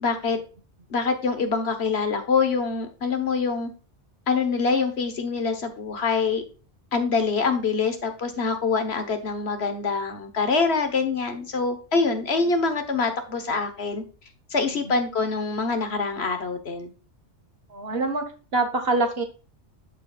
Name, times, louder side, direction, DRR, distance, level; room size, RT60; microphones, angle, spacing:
voice 1, 0.0-0.4 0.9-3.7 4.3-6.4 6.9-14.0 14.5-16.9, left 4 dB, 65° left, 7 dB, 1.5 m, -25 dB
voice 2, 14.6-14.9 17.7-18.2 18.5-19.2, right 2 dB, 60° right, 6 dB, 1.5 m, -25 dB
13.0 x 4.4 x 2.4 m, 0.35 s
omnidirectional pair, 1.2 m